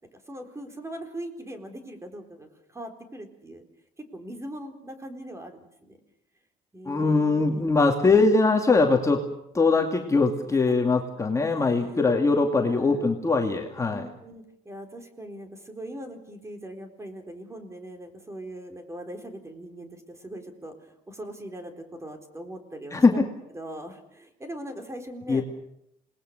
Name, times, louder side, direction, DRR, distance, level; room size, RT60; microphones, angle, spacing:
voice 1, 0.3-3.6 4.0-6.0 6.7-7.7 10.5-10.6 11.4-11.9 12.6-13.0 13.9-23.2 23.5-25.4, right 1 dB, 15° right, 5 dB, 4.1 m, -41 dB
voice 2, 6.9-9.2 9.5-14.0 22.9-23.2 25.3-25.4, left 3 dB, 20° left, 2 dB, 2.5 m, -21 dB
28.0 x 20.0 x 6.7 m, 0.78 s
cardioid pair, 110°, 17 cm